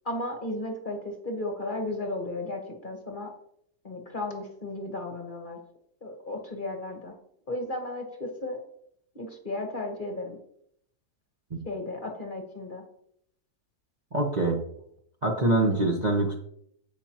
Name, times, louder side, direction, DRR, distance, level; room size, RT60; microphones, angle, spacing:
voice 1, 0.0-3.3 3.8-5.6 6.0-7.1 7.5-8.6 9.1-10.4 11.6-12.8, left 2 dB, 35° left, 2 dB, 1.3 m, -34 dB
voice 2, 14.1-14.6 15.2-16.4, right 2 dB, 30° right, -1 dB, 1.0 m, -24 dB
16.0 x 5.3 x 2.9 m, 0.71 s
omnidirectional pair, 1.8 m